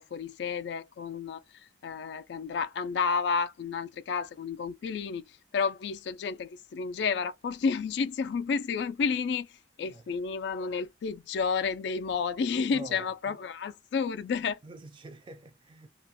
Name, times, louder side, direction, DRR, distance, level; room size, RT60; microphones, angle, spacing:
voice 1, 0.0-1.4 1.8-5.2 5.5-9.5 9.8-14.6, left 5 dB, 65° left, 0.3 m, -31 dB
voice 2, 12.7-13.4 14.6-15.9, right 2 dB, 25° right, 0.3 m, -46 dB
2.3 x 2.1 x 2.6 m
head